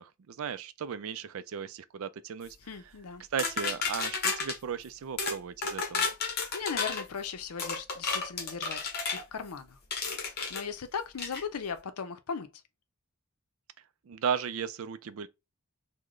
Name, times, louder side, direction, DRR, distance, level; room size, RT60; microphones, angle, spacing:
voice 1, 0.0-2.6 3.3-6.1 14.1-15.3, right 7 dB, 65° right, 0.4 m, -35 dB
voice 2, 2.6-3.2 6.5-9.8 10.1-12.5, left 6 dB, 85° left, 0.6 m, -38 dB
sound 1, 3.4-4.6 5.2-5.4 5.6-7.0 7.6-9.2 9.9-10.6 11.2-11.4, left 4 dB, 45° left, 0.8 m, -32 dB
3.7 x 2.1 x 3.1 m
head